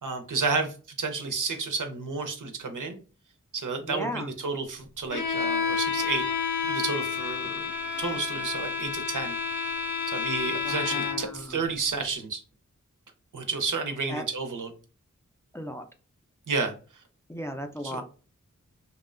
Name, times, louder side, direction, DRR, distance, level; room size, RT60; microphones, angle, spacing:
voice 1, 0.0-3.0 3.5-6.2 6.7-7.7 8.0-9.8 10.1-12.4 13.3-14.7 16.5-16.7 17.8-18.0, right 4 dB, 75° right, 7 dB, 0.6 m, -31 dB
voice 2, 3.8-4.3 10.6-11.6 14.1-14.2 15.5-15.8 17.3-18.0, equal, 10° left, 5 dB, 0.3 m, -36 dB
Bowed string instrument, 5.1-11.4, left 6 dB, 70° left, 0.5 m, -30 dB
2.6 x 2.1 x 2.4 m, 0.36 s
wide cardioid pair, 40°, 31 cm